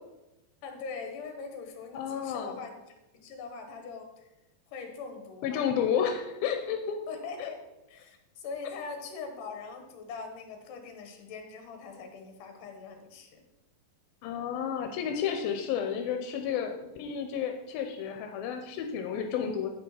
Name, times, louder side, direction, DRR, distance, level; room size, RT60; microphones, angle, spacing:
voice 1, 0.6-2.8 3.1-4.3 4.7-5.7 7.1-7.6 7.9-13.4, left 5 dB, 70° left, 4 dB, 2.7 m, -42 dB
voice 2, 1.9-2.5 5.4-7.0 7.4-7.5 14.2-19.7, left 8 dB, 85° left, 5 dB, 2.5 m, -31 dB
8.5 x 5.4 x 5.7 m, 0.97 s
omnidirectional pair, 4.2 m